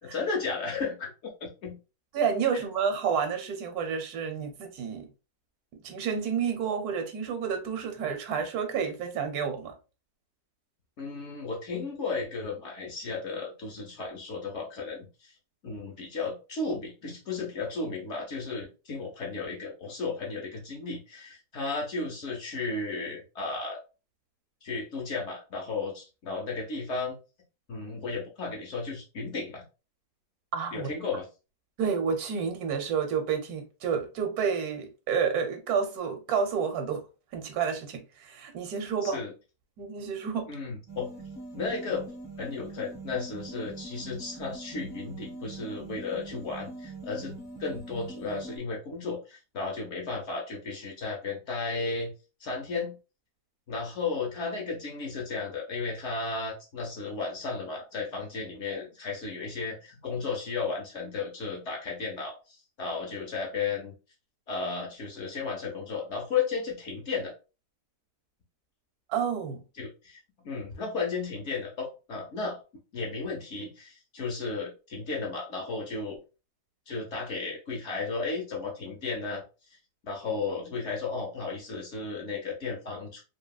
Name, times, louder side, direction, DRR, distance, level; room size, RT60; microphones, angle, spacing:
voice 1, 0.0-1.8 11.0-15.3 15.6-23.8 24.6-27.2 27.7-29.6 30.7-31.3 39.0-39.3 40.5-41.1 41.5-42.0 42.4-52.1 52.4-52.9 53.7-63.9 64.5-67.3 69.8-72.6 72.9-76.2 76.9-79.8 80.0-83.2, left 4 dB, 60° left, 0.9 m, -34 dB
voice 2, 2.1-5.1 5.8-9.7 30.5-30.9 31.8-37.0 37.3-39.2 39.8-40.5 69.1-69.6, right 6 dB, 75° right, 1.1 m, -30 dB
sound 1, 40.9-48.6, right 2 dB, 10° left, 0.6 m, -43 dB
2.8 x 2.7 x 2.2 m
omnidirectional pair, 1.7 m